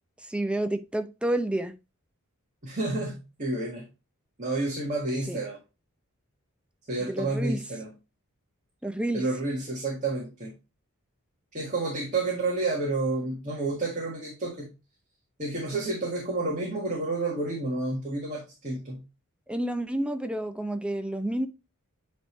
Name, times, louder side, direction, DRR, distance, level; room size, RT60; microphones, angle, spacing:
voice 1, 0.2-1.8 5.3-5.4 7.1-7.6 8.8-9.2 19.5-21.5, right 1 dB, 5° right, 0.5 m, -29 dB
voice 2, 2.6-3.8 4.4-5.6 6.9-7.9 9.1-10.5 11.5-14.7 15.4-19.0, right 2 dB, 35° right, 1.7 m, -30 dB
9.2 x 3.5 x 3.1 m
head